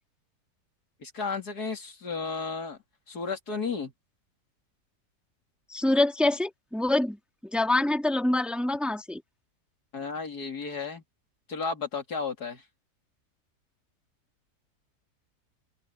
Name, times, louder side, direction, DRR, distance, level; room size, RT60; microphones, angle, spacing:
voice 1, 1.0-2.8 3.1-3.9 9.9-11.0 11.5-12.6, left 4 dB, 75° left, 3.3 m, -33 dB
voice 2, 5.7-7.2 7.5-9.2, left 2 dB, ahead, 1.9 m, -25 dB
omnidirectional pair, 1.7 m